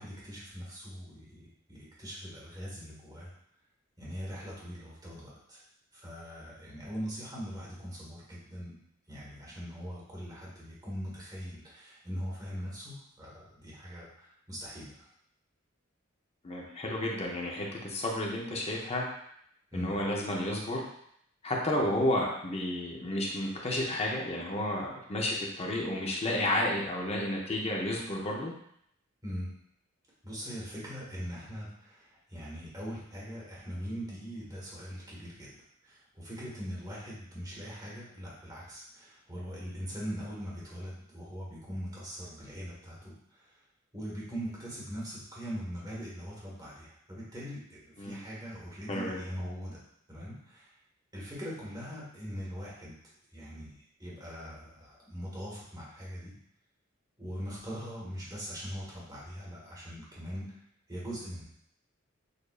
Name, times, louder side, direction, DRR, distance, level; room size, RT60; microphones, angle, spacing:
voice 1, 0.0-3.3 4.0-5.6 5.9-8.7 9.1-14.9 19.7-19.9 29.2-29.5 30.2-35.5 35.8-43.1 43.9-49.8 50.1-50.7 51.1-52.9 53.3-53.7 54.0-56.3 57.2-60.4 60.9-61.4, equal, 20° right, -7 dB, 1.4 m, -41 dB
voice 2, 16.4-19.0 19.7-20.8 21.4-28.5 48.0-48.2 48.9-49.2, left 1 dB, 30° left, -1 dB, 0.7 m, -31 dB
6.5 x 2.6 x 2.4 m, 0.71 s
head